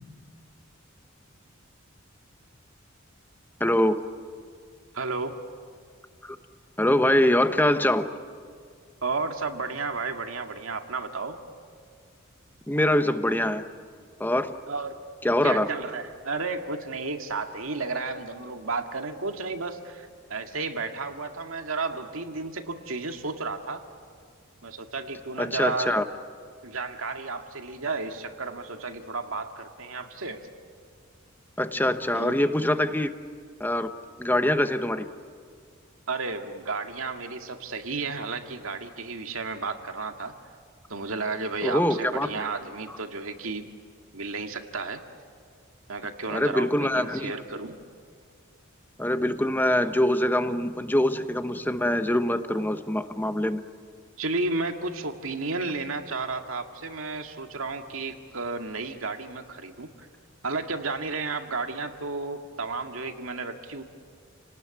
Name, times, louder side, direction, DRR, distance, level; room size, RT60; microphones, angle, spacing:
voice 1, 3.6-4.0 6.2-6.4 6.8-8.1 12.7-13.7 14.2-14.6 15.2-15.7 25.4-26.0 31.6-33.1 33.6-33.9 34.2-35.1 41.6-42.4 42.9-43.0 46.3-47.3 49.0-53.6, left 1 dB, 10° left, 9 dB, 1.0 m, -24 dB
voice 2, 4.9-5.4 9.0-11.4 14.7-15.0 15.4-23.8 24.6-26.0 26.6-30.5 32.1-32.3 36.1-40.3 40.9-43.6 44.1-45.0 45.9-47.8 54.2-60.1 60.4-63.8, right 3 dB, 85° right, 5 dB, 2.1 m, -32 dB
29.5 x 19.0 x 9.8 m, 2.1 s
head